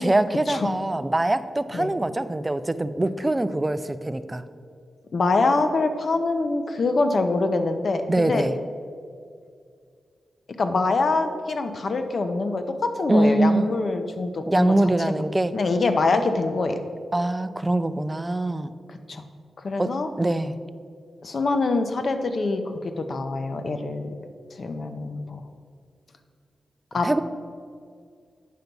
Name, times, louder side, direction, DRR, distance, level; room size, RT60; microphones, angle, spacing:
voice 1, 0.0-4.4 8.1-8.5 13.1-13.7 14.5-15.5 17.1-18.7 19.8-19.9 20.2-20.6 27.0-27.2, right 1 dB, 15° right, 12 dB, 0.4 m, -23 dB
voice 2, 5.1-8.5 10.6-14.7 15.1-15.2 15.5-16.8 18.9-19.2 19.6-20.1 21.2-24.1 24.6-25.4 26.9-27.1, left 3 dB, 50° left, 7 dB, 0.7 m, -24 dB
9.3 x 5.8 x 5.3 m, 2.2 s
wide cardioid pair, 110°, 0 cm